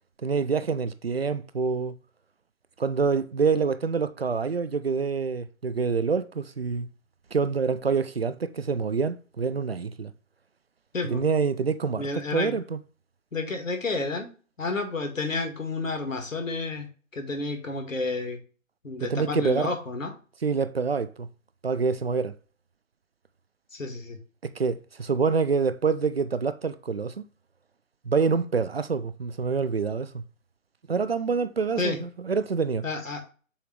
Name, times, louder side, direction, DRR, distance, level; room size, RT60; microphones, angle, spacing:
voice 1, 0.2-1.9 2.8-6.9 7.3-10.1 11.1-12.1 12.3-12.8 19.0-19.7 20.4-21.3 21.6-22.4 24.4-27.2 28.1-30.2 30.9-32.8, right 5 dB, 45° right, 0.4 m, -26 dB
voice 2, 12.0-12.6 13.3-14.3 14.6-16.9 17.1-18.4 18.8-20.1 23.7-24.2 31.8-32.0 32.8-33.2, left 3 dB, 65° left, 1.8 m, -30 dB
7.0 x 2.9 x 4.9 m
figure-of-eight pair, 140°, 42 cm